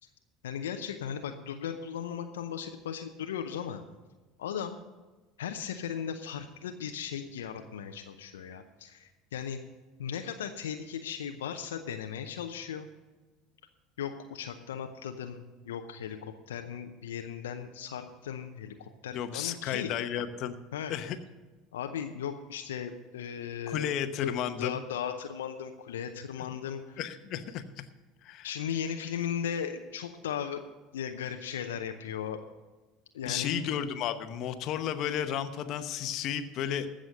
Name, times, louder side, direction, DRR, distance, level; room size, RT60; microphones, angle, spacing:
voice 1, 0.4-3.8 4.4-4.8 5.4-9.6 10.0-12.9 14.0-19.9 20.7-20.9 21.7-23.9 24.2-27.0 28.4-30.6 30.9-32.4 33.1-33.6, left 8 dB, 80° left, 6 dB, 0.7 m, -37 dB
voice 2, 19.1-20.6 20.9-21.2 23.7-24.8 26.4-26.5 27.0-27.9 28.2-28.5 33.2-36.9, left 9 dB, 55° left, 10 dB, 0.9 m, -33 dB
15.0 x 6.4 x 6.4 m, 1.2 s
hypercardioid pair, 70°, 0 cm